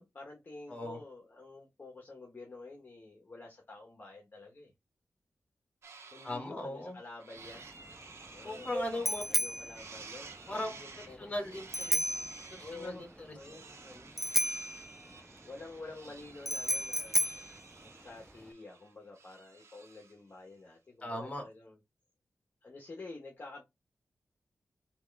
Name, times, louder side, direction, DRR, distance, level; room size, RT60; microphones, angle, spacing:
voice 1, 0.0-4.7 6.1-7.7 8.3-8.8 9.3-10.3 10.7-11.3 12.6-13.1 13.3-13.7 15.4-21.8 22.6-23.7, left 3 dB, 45° left, 1.2 m, -49 dB
voice 2, 0.7-1.0 6.2-7.0 8.4-9.2 10.5-10.8 11.0-12.2 12.5-14.1 21.0-21.5, left 1 dB, 30° left, 1.7 m, -39 dB
sound 1, 5.8-6.4 6.8-9.5 9.7-20.2, right 4 dB, 80° right, 0.8 m, -53 dB
Bicycle bell, 7.4-18.5, equal, 5° right, 0.4 m, -35 dB
3.6 x 3.0 x 3.3 m
wide cardioid pair, 90°, 5 cm